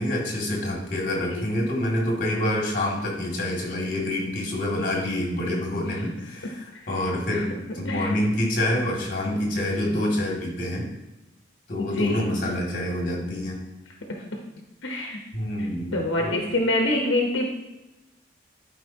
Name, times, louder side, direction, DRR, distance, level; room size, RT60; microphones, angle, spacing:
voice 1, 0.0-10.8 11.7-13.6 15.3-16.5, left 1 dB, 45° left, -2 dB, 2.3 m, -27 dB
voice 2, 11.8-12.2 14.8-15.2 15.9-17.5, left 1 dB, 80° left, 1 dB, 0.9 m, -25 dB
11.5 x 5.0 x 2.8 m, 1.0 s
head